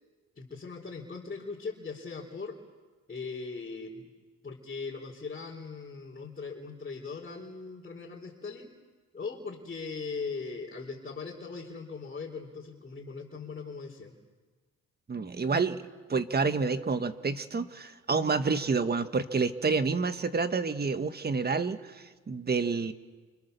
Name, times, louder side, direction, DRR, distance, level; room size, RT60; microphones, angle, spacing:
voice 1, 0.4-2.6 3.1-4.1 4.4-8.7 9.1-14.1, left 4 dB, 30° left, -4 dB, 4.4 m, -39 dB
voice 2, 15.1-15.8 16.1-22.9, right 4 dB, 30° right, 9 dB, 1.7 m, -29 dB
29.0 x 28.5 x 7.0 m, 1.3 s
cardioid pair, 90°, 30 cm